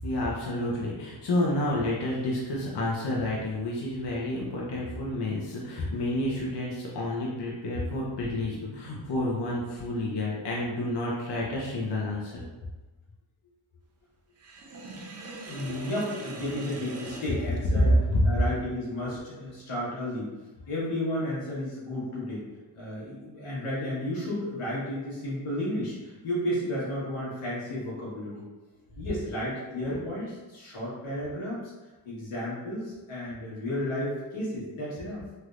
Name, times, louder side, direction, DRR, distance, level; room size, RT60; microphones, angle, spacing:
voice 1, 0.0-12.4 17.8-18.3 29.9-30.0, left 1 dB, 55° left, -4 dB, 0.8 m, -29 dB
Sink (filling or washing), 14.4-18.3, right 2 dB, 30° right, 0.6 m, -41 dB
voice 2, 15.4-17.9 18.2-20.3 20.7-22.4 22.7-28.4 29.0-31.7 32.0-35.2, left 1 dB, 90° left, -7 dB, 1.4 m, -33 dB
3.3 x 2.8 x 2.4 m, 1.2 s
cardioid pair, 60°, 49 cm